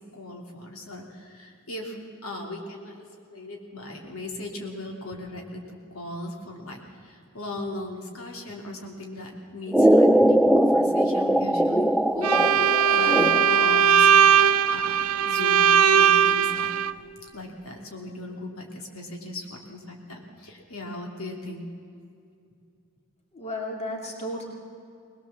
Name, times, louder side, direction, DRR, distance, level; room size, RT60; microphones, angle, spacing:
voice 1, 0.1-2.0 2.2-15.7 15.9-16.7 17.2-21.7, left 2 dB, 75° left, 0 dB, 2.8 m, -38 dB
sound 1, 9.7-13.8, right 1 dB, ahead, 0.4 m, -20 dB
Bowed string instrument, 12.2-16.9, right 7 dB, 85° right, 0.6 m, -19 dB
voice 2, 23.3-24.4, left 1 dB, 30° left, 0 dB, 2.9 m, -33 dB
21.5 x 20.0 x 7.2 m, 2.4 s
head